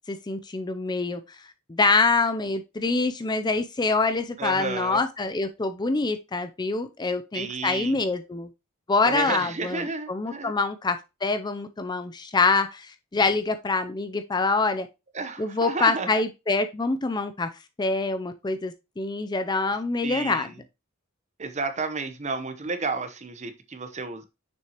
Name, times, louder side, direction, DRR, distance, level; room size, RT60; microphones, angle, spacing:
voice 1, 0.1-1.2 1.7-8.5 8.9-14.9 15.4-17.5 17.8-20.5, left 3 dB, 20° left, 0.4 m, -25 dB
voice 2, 4.4-5.0 7.3-8.0 9.0-10.5 15.1-16.1 20.0-20.5 21.4-24.2, right 4 dB, 35° right, 0.8 m, -31 dB
6.6 x 6.1 x 2.9 m
head